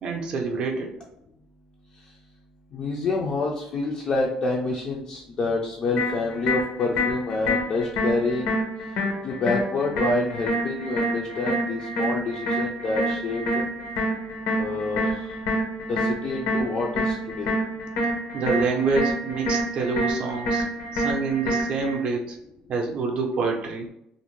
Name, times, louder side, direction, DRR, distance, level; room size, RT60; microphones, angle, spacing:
voice 1, 0.0-0.9 18.3-20.6 20.9-22.4 22.7-23.9, right 4 dB, 45° right, 1 dB, 0.4 m, -26 dB
voice 2, 2.7-8.6 9.2-13.6 14.6-15.4 15.9-17.5, left 3 dB, 35° left, -2 dB, 0.3 m, -27 dB
sound 1, 6.0-22.0, equal, 85° left, 0.7 m, -27 dB
2.5 x 2.0 x 3.0 m, 0.78 s
cardioid pair, 155°, 2 cm